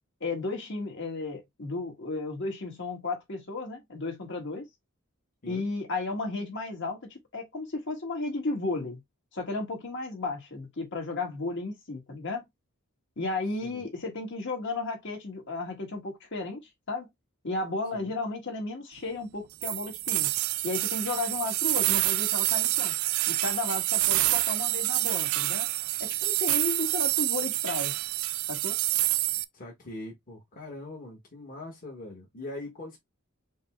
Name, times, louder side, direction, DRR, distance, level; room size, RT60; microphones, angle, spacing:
voice 1, 0.2-4.7 5.5-9.0 9.3-12.5 13.2-17.1 17.4-20.3 20.6-23.0 23.3-25.7 26.0-27.9 28.5-28.8, left 3 dB, 60° left, 1.8 m, -34 dB
sound 1, 19.6-29.4, right 16 dB, 80° right, 0.4 m, -27 dB
voice 2, 29.5-33.0, left 2 dB, 40° left, 1.3 m, -42 dB
5.2 x 2.2 x 3.6 m
head